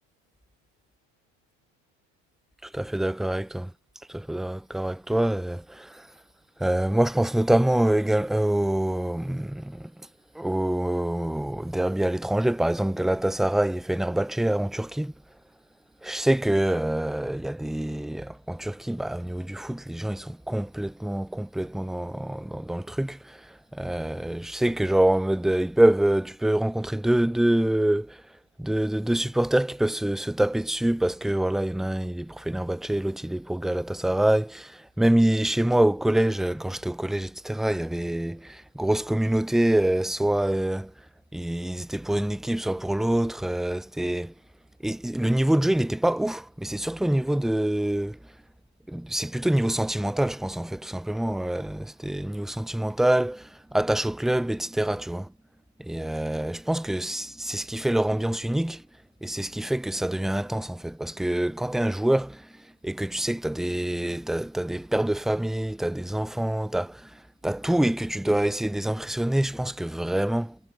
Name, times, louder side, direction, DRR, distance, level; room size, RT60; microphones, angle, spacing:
voice 1, 2.6-3.7 4.1-6.1 6.6-9.9 10.3-15.1 16.0-28.2 28.6-40.9 41.3-44.3 44.8-48.2 48.9-55.3 55.8-58.8 59.2-70.6, right 1 dB, ahead, 0.4 m, -26 dB
supercardioid pair, 120°, 33 cm